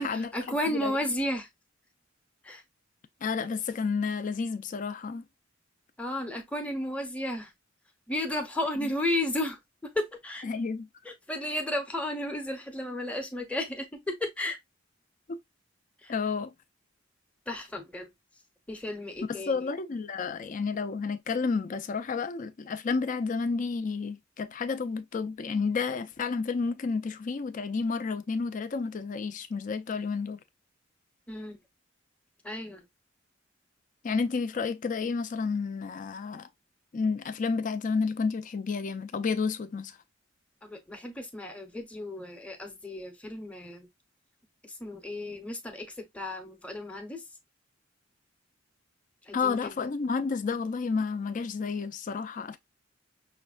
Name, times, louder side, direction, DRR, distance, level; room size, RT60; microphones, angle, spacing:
voice 1, 0.0-1.5 2.4-2.6 6.0-7.5 8.1-10.4 11.3-14.6 16.0-16.1 17.5-18.1 18.7-19.7 31.3-31.6 32.4-32.8 40.6-43.9 44.6-45.9 46.1-47.2 49.3-49.8, left 1 dB, 5° left, 0.7 m, -33 dB
voice 2, 3.2-5.3 8.8-8.9 10.4-10.9 15.3-15.4 16.1-16.5 19.3-30.4 34.0-36.5 36.9-40.0 49.3-52.6, left 4 dB, 40° left, 0.4 m, -31 dB
5.6 x 2.1 x 2.4 m
head